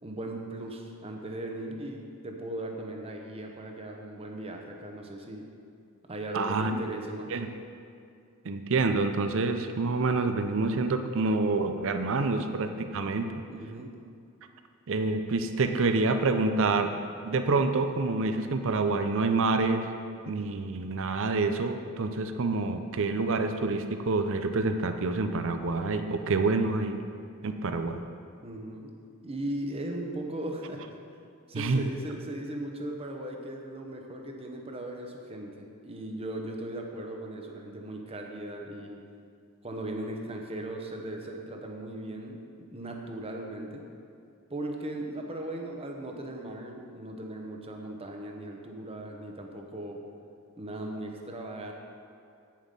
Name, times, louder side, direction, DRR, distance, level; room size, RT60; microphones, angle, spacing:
voice 1, 0.0-5.5 6.1-7.3 13.5-14.0 28.4-28.9 29.2-31.0 31.5-39.0 39.6-43.9 44.5-50.0 50.6-51.7, right 1 dB, 25° right, 2 dB, 0.9 m, -38 dB
voice 2, 6.3-6.7 7.3-7.5 8.4-13.3 14.9-16.9 17.2-19.9 20.3-27.0 27.4-28.0 31.5-31.8, right 3 dB, 60° right, 7 dB, 0.6 m, -27 dB
9.3 x 7.4 x 5.3 m, 2.3 s
head